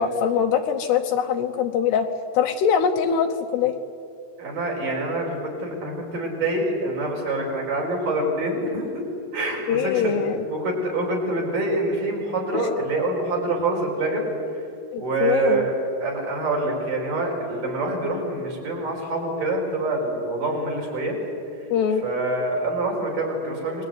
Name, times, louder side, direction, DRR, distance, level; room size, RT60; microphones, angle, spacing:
voice 1, 0.0-2.1 2.3-3.8 9.7-10.5 12.5-12.6 14.9-15.6 21.7-22.0, left 7 dB, 75° left, 6 dB, 2.9 m, -22 dB
voice 2, 4.4-8.9 9.3-10.2 10.5-14.2 14.9-15.7 16.0-21.2 22.0-23.8, right 2 dB, 45° right, 0 dB, 6.6 m, -26 dB
29.0 x 21.5 x 9.4 m, 2.5 s
omnidirectional pair, 5.3 m